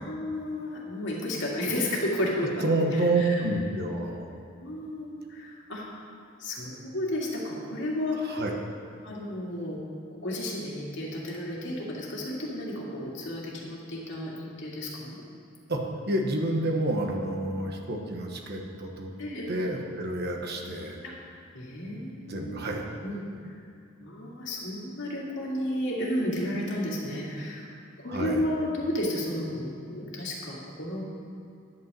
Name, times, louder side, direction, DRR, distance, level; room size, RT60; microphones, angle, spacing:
voice 1, 0.0-2.6 2.9-3.4 4.6-5.9 6.4-8.4 9.0-9.8 10.2-15.2 19.2-19.5 21.0-21.1 21.5-22.6 23.0-23.2 24.0-27.7 28.0-31.0, left 1 dB, 65° left, -4 dB, 2.2 m, -32 dB
voice 2, 2.6-4.3 8.3-8.5 15.7-15.8 16.1-19.1 19.5-21.0 22.2-22.8 28.1-28.4, right 2 dB, 55° right, 2 dB, 1.1 m, -28 dB
10.5 x 5.4 x 7.4 m, 2.6 s
head